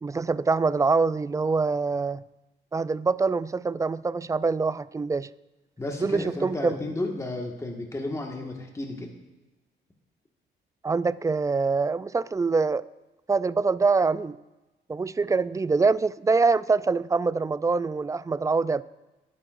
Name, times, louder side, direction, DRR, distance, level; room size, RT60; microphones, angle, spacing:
voice 1, 0.0-2.2 2.7-5.3 6.0-6.7 10.8-12.8 13.3-14.4 14.9-18.8, right 4 dB, 15° right, 17 dB, 0.3 m, -24 dB
voice 2, 5.8-9.1, left 2 dB, 15° left, 1 dB, 1.7 m, -33 dB
21.0 x 9.3 x 2.6 m, 1.1 s
cardioid pair, 90°, 20 cm